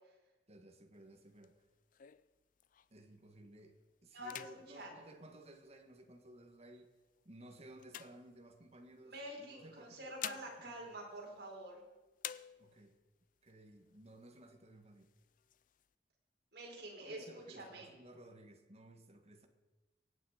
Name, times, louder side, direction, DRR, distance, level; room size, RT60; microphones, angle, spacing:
voice 1, 0.5-1.6 2.9-6.9 7.2-11.0 12.6-13.0 13.4-15.1 17.0-19.5, right 1 dB, 35° right, 4 dB, 1.7 m, -57 dB
sound 1, 0.9-3.1 3.6-3.8 4.2-6.1 6.8-8.9 9.8-11.8 12.2-13.0 13.5-13.6 13.8-14.5 15.0-15.9, left 11 dB, 50° left, 0.4 m, -51 dB
voice 2, 4.1-4.9 9.0-11.8 16.5-17.9, right 1 dB, 65° right, -2 dB, 4.8 m, -48 dB
23.5 x 9.1 x 5.1 m, 1.1 s
head